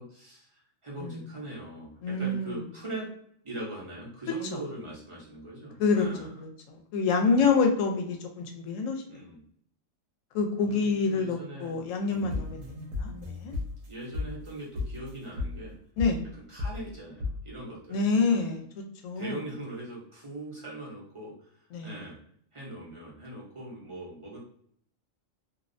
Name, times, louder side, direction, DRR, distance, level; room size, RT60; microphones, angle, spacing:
voice 1, 0.0-3.1 3.4-6.3 7.3-7.5 9.1-9.4 10.6-11.7 12.1-12.6 13.9-15.8 16.5-18.4 19.2-22.2 22.5-24.4, right 1 dB, 35° right, -6 dB, 0.5 m, -41 dB
voice 2, 2.0-2.6 5.8-6.1 6.4-9.0 10.3-12.6 13.0-13.5 16.0-16.2 17.9-18.6 19.0-19.4 21.7-21.9, left 4 dB, 75° left, 3 dB, 0.9 m, -27 dB
sound 1, 12.1-14.5 14.7-15.1 15.4-15.7 16.0-16.3 16.6-16.9 17.2-17.5, left 3 dB, 85° right, 1.0 m, -35 dB
2.5 x 2.0 x 2.5 m, 0.66 s
omnidirectional pair, 1.4 m